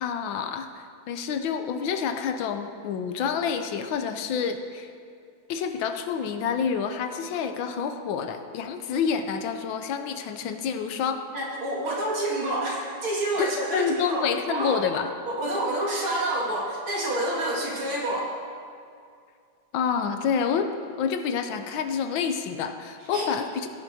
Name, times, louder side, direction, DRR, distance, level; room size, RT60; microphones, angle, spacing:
voice 1, 0.0-4.9 5.5-11.2 13.4-15.1 19.7-20.7 21.0-23.7, left 6 dB, 75° left, 7 dB, 1.4 m, -28 dB
voice 2, 11.3-14.8 15.2-18.3 23.1-23.3, right 1 dB, 90° right, -4 dB, 2.9 m, -28 dB
16.5 x 9.7 x 2.8 m, 2.3 s
omnidirectional pair, 2.2 m